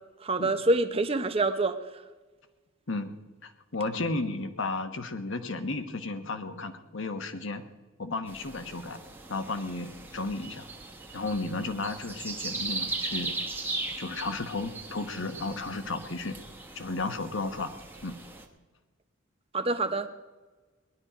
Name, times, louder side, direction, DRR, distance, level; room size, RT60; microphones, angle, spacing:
voice 1, 0.2-1.8 19.5-20.1, right 2 dB, 30° right, 9 dB, 0.8 m, -26 dB
voice 2, 3.4-7.6 8.0-9.0 9.3-10.7 11.1-13.3 14.0-16.4 16.7-17.7 18.0-18.1, left 3 dB, 65° left, 8 dB, 1.1 m, -33 dB
sound 1, 8.3-18.5, right 3 dB, 10° right, 1.2 m, -38 dB
19.5 x 11.5 x 5.1 m, 1.3 s
head